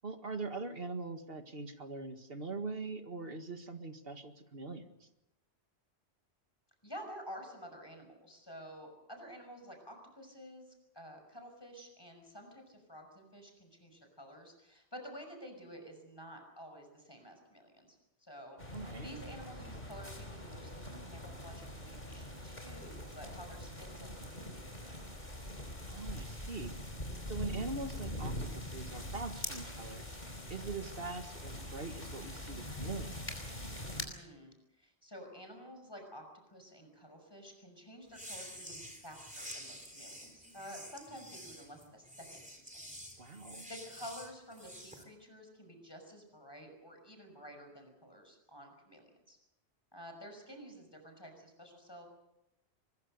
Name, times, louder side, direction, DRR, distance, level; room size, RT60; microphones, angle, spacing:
voice 1, 0.0-5.1 18.7-19.1 25.9-26.7 27.3-33.4 43.2-43.7, right 3 dB, 60° right, 7 dB, 2.1 m, -42 dB
voice 2, 6.8-24.9 34.1-42.4 43.2-43.4 43.7-49.4 49.9-52.1, equal, 20° left, 4 dB, 5.9 m, -51 dB
sound 1, 18.6-34.1, left 1 dB, 45° left, 4.8 m, -43 dB
sound 2, 38.1-45.0, equal, 5° right, 3.7 m, -49 dB
24.0 x 21.5 x 6.7 m, 0.87 s
omnidirectional pair, 1.1 m